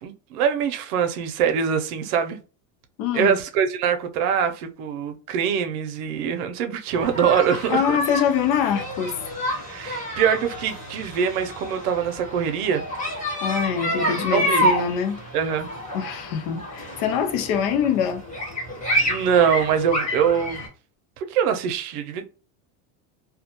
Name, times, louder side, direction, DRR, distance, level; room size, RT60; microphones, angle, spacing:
voice 1, 0.0-2.4 3.1-8.0 9.5-12.8 14.0-14.7 15.3-15.7 19.0-20.6 21.2-22.3, right 7 dB, 85° right, 0.6 m, -23 dB
voice 2, 3.0-3.4 7.7-9.2 13.4-15.2 15.9-18.2, left 8 dB, 75° left, 0.6 m, -24 dB
sound 1, 6.9-20.7, equal, 15° left, 1.0 m, -28 dB
2.3 x 2.1 x 2.8 m
cardioid pair, 155°, 44 cm